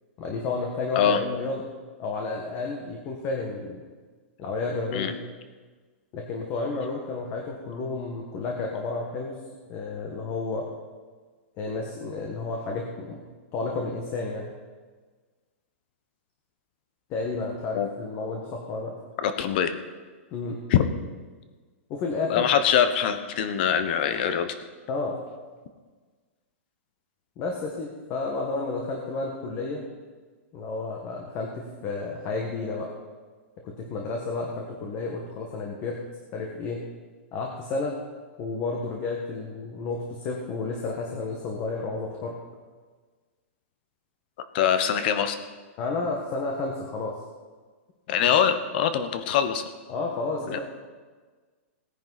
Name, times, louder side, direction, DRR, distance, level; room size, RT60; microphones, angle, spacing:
voice 1, 0.2-1.6 2.0-3.9 4.4-5.2 6.1-9.3 9.7-10.7 11.6-13.2 13.5-14.5 17.1-18.9 20.3-20.6 21.9-22.5 24.9-25.2 27.4-29.9 30.5-32.9 33.6-36.0 36.3-36.8 37.3-38.0 38.4-42.4 45.8-47.2 48.2-48.3 49.9-50.6, left 3 dB, 30° left, 0 dB, 1.5 m, -31 dB
voice 2, 19.2-19.7 20.7-20.8 22.3-24.6 44.5-45.4 48.1-49.6 50.5-50.6, left 8 dB, 45° left, 10 dB, 1.1 m, -23 dB
17.5 x 10.0 x 4.1 m, 1.4 s
hypercardioid pair, 160°, 7 cm